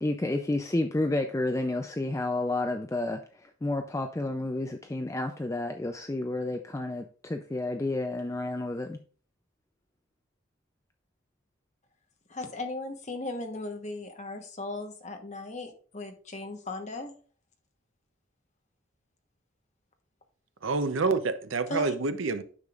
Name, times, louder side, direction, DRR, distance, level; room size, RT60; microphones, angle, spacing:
voice 1, 0.0-9.0, left 2 dB, 15° left, 0.4 m, -30 dB
voice 2, 12.3-17.1 21.7-21.9, left 2 dB, 35° left, 1.1 m, -37 dB
voice 3, 20.6-22.4, right 4 dB, 75° right, 0.7 m, -27 dB
9.6 x 6.7 x 2.4 m
head